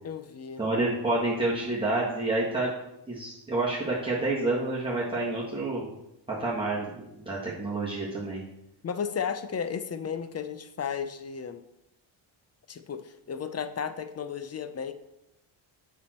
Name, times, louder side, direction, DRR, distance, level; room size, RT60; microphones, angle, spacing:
voice 1, 0.0-0.6 8.8-11.6 12.7-14.9, left 7 dB, 30° left, 10 dB, 0.6 m, -34 dB
voice 2, 0.6-2.7 3.1-5.8 6.3-8.4, right 2 dB, 10° right, -7 dB, 1.7 m, -28 dB
7.1 x 6.2 x 4.3 m, 0.87 s
cardioid pair, 110°, 49 cm